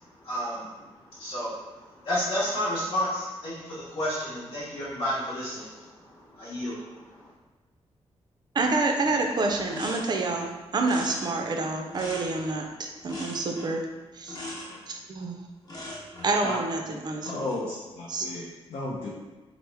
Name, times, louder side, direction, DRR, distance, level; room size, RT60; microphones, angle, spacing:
voice 1, 0.2-7.3, equal, 65° left, -11 dB, 1.0 m, -32 dB
voice 2, 8.5-13.9 14.1-14.4 14.9-15.4 16.2-17.5 18.1-18.3, right 3 dB, 40° right, 2 dB, 0.4 m, -28 dB
sound 1, 9.0-9.2 9.5-10.4 10.8-12.6 13.1-13.8 14.3-14.8 15.6-16.3 17.1-17.6, left 2 dB, 35° left, 0.8 m, -40 dB
voice 3, 17.3-19.1, left 2 dB, 85° left, -7 dB, 0.5 m, -34 dB
3.0 x 2.0 x 3.3 m, 1.3 s
wide cardioid pair, 120°, 11 cm